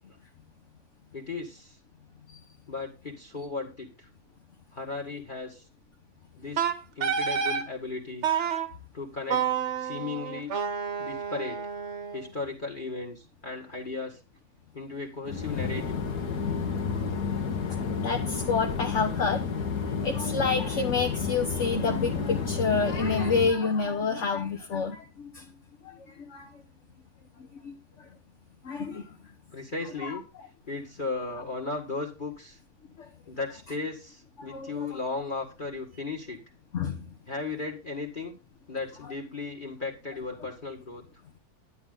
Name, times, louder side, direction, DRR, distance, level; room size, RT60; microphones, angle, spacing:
voice 1, 1.1-1.8 2.7-4.1 4.7-5.6 6.3-6.7 7.0-8.3 8.9-9.4 9.8-10.5 11.0-11.6 12.1-14.2 14.7-16.0 29.5-30.2 30.7-32.6 33.3-36.4 37.3-38.4 38.7-41.0, left 3 dB, 30° left, 3 dB, 2.0 m, -36 dB
Wind instrument woodwind instrument, 6.6-7.7 8.2-8.7 9.3-12.3, right 7 dB, 50° right, 1.2 m, -29 dB
sound 1, 15.3-23.5, left 5 dB, 70° left, 1.8 m, -30 dB
voice 2, 18.0-19.4 20.0-25.4 25.8-25.9 26.3-26.5 27.6-27.7 28.6-29.0 34.4-35.0 36.7-37.0, left 5 dB, 50° left, 3 dB, 1.3 m, -28 dB
11.0 x 9.5 x 3.8 m, 0.27 s
omnidirectional pair, 1.8 m